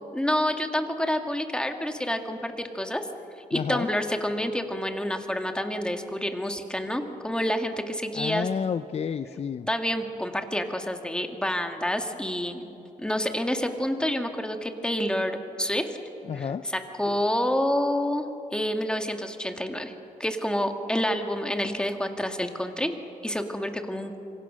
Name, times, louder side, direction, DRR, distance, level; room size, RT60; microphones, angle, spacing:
voice 1, 0.1-3.1 3.5-8.5 9.7-12.7 13.0-15.9 16.3-16.5 17.0-19.9 20.2-23.0 23.2-24.1, left 1 dB, 5° left, 5 dB, 2.1 m, -28 dB
voice 2, 3.5-3.9 8.1-9.7 16.2-16.7, left 7 dB, 45° left, 12 dB, 0.6 m, -30 dB
26.5 x 24.0 x 6.4 m, 3.0 s
cardioid pair, 95°, 14 cm